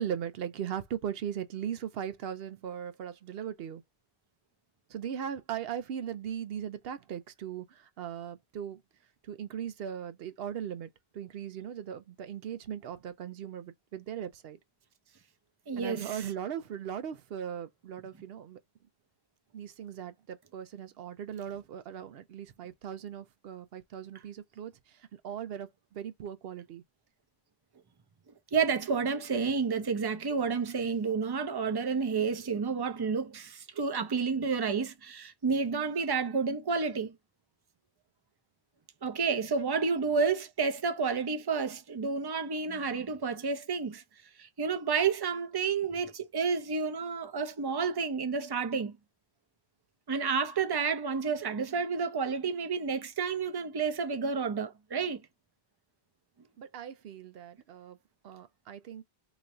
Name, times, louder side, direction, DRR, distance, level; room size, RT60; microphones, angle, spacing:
voice 1, 0.0-3.8 4.9-8.8 9.2-14.6 15.8-18.6 19.5-26.8 39.9-40.0 56.6-58.0 58.2-59.0, right 9 dB, 70° right, 0.8 m, -39 dB
voice 2, 15.7-16.1 28.5-37.1 39.0-44.0 44.4-48.9 50.1-55.2, right 5 dB, 30° right, 0.5 m, -30 dB
3.1 x 2.5 x 4.1 m
omnidirectional pair, 1.1 m